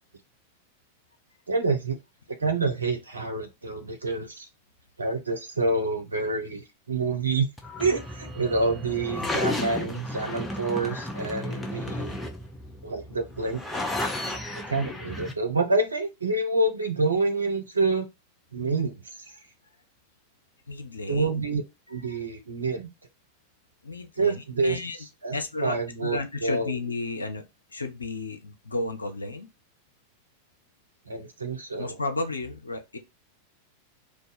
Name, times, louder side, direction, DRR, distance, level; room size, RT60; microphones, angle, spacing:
voice 1, 1.5-2.0 2.4-4.5 5.0-7.5 7.8-12.2 12.8-13.8 14.5-18.1 18.5-19.0 21.1-21.6 21.9-22.9 24.2-25.4 25.6-26.7 31.1-32.0, right 3 dB, 75° right, 0.7 m, -27 dB
sound 1, 7.6-15.3, left 1 dB, 10° left, 0.6 m, -33 dB
voice 2, 20.7-21.4 23.8-25.0 25.3-27.4 27.7-29.5 31.8-33.0, left 2 dB, 80° left, 0.6 m, -33 dB
2.5 x 2.3 x 3.9 m
figure-of-eight pair, 90°, 0 cm